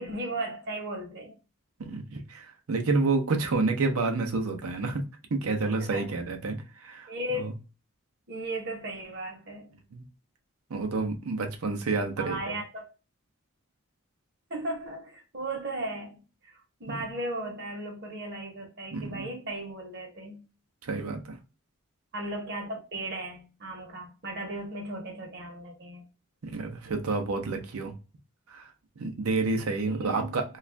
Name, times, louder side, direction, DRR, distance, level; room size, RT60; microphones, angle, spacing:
voice 1, 0.0-1.4 5.8-6.2 7.1-7.5 8.3-9.8 12.2-12.9 14.5-20.4 22.1-26.0 29.9-30.4, right 1 dB, 50° right, 0.9 m, -36 dB
voice 2, 1.8-5.0 5.3-6.6 6.8-7.1 7.3-7.5 9.9-10.0 10.7-12.6 18.9-19.3 20.8-21.4 26.4-27.9 28.5-28.7 29.0-30.6, right 3 dB, 85° right, 0.6 m, -29 dB
2.4 x 2.4 x 3.1 m
head